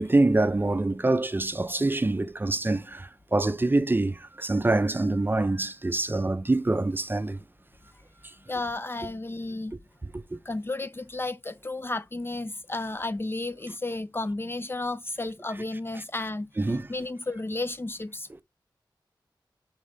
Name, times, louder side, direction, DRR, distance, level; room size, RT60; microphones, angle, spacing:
voice 1, 0.0-7.4 10.1-10.4 15.9-16.0 16.6-16.9, right 2 dB, 25° right, 0.5 m, -25 dB
voice 2, 8.5-9.8 10.5-16.5 16.9-18.4, left 2 dB, 30° left, 0.4 m, -32 dB
5.3 x 4.7 x 3.8 m
cardioid pair, 50°, 8 cm